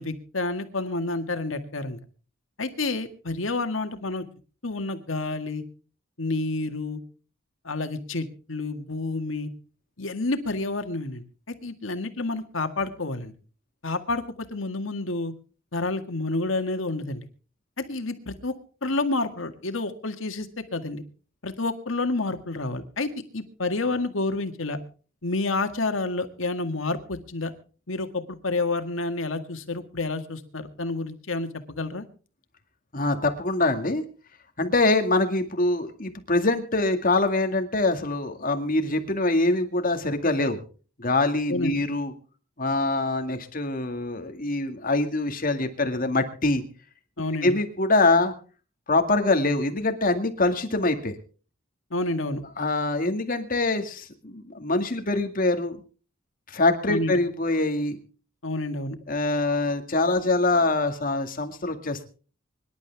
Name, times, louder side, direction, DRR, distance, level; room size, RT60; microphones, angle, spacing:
voice 1, 0.0-2.0 2.6-4.2 4.6-5.6 6.2-7.0 7.6-9.5 10.0-13.3 13.8-15.3 15.7-17.3 17.8-18.5 18.8-21.0 21.4-24.8 25.2-27.5 27.9-32.0 41.5-41.7 47.2-47.5 51.9-52.4 56.9-57.1 58.4-59.0, left 2 dB, 85° left, 8 dB, 1.9 m, -29 dB
voice 2, 32.9-34.0 34.6-40.6 41.0-42.1 42.6-46.6 47.4-48.3 48.9-51.2 52.6-55.8 56.5-58.0 59.1-62.0, left 2 dB, 45° left, 6 dB, 2.1 m, -24 dB
25.0 x 11.5 x 3.5 m, 0.38 s
head